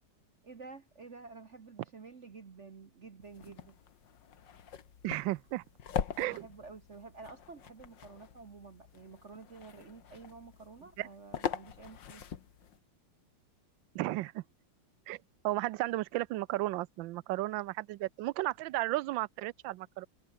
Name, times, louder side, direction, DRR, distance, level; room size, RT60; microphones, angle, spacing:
voice 1, 0.4-3.8 6.2-12.3, right 4 dB, 40° right, 1.6 m, -50 dB
sound 1, 3.2-12.8, left 8 dB, 70° left, 2.2 m, -42 dB
voice 2, 5.0-5.6 6.2-6.5 11.0-11.1 13.9-14.4 15.1-15.2 15.4-20.1, right 17 dB, 85° right, 1.3 m, -34 dB
omnidirectional pair, 2.0 m